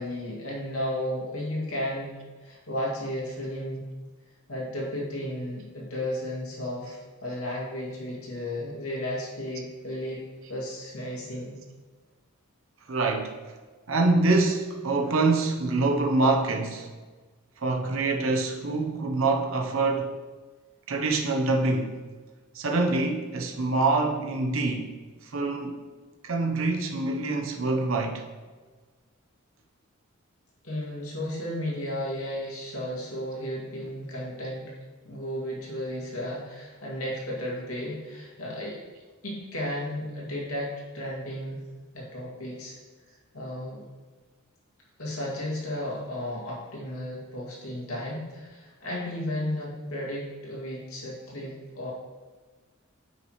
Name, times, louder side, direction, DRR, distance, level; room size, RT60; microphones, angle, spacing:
voice 1, 0.0-3.9 4.5-10.2 10.5-11.6 30.6-34.7 35.0-38.8 39.2-41.6 41.9-42.7 43.3-43.8 45.0-51.9, left 1 dB, 85° left, -5 dB, 2.2 m, -34 dB
voice 2, 12.9-13.3 13.9-16.9 17.6-20.1 20.9-21.9 22.5-24.9 25.2-25.8 26.2-28.2, right 3 dB, 65° right, 2 dB, 0.8 m, -25 dB
8.7 x 5.7 x 3.1 m, 1.4 s
head